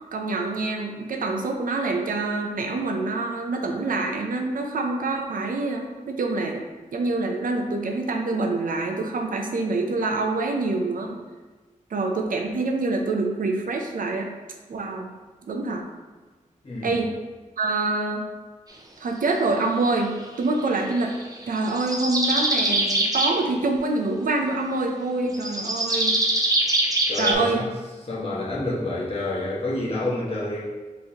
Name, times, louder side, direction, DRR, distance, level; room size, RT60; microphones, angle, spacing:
voice 1, 0.1-6.6 6.9-11.2 11.9-14.3 14.7-15.1 15.5-15.9 16.8-17.1 17.6-18.2 19.0-21.2 21.5-26.2 27.2-27.6, right 3 dB, 90° right, 3 dB, 0.6 m, -26 dB
voice 2, 16.6-17.0 27.1-27.7 28.0-30.6, left 2 dB, 45° left, -7 dB, 1.3 m, -28 dB
sound 1, 20.9-23.4 25.3-27.3, right 1 dB, 25° right, 0.6 m, -23 dB
5.6 x 3.2 x 2.8 m, 1.3 s
wide cardioid pair, 100°, 14 cm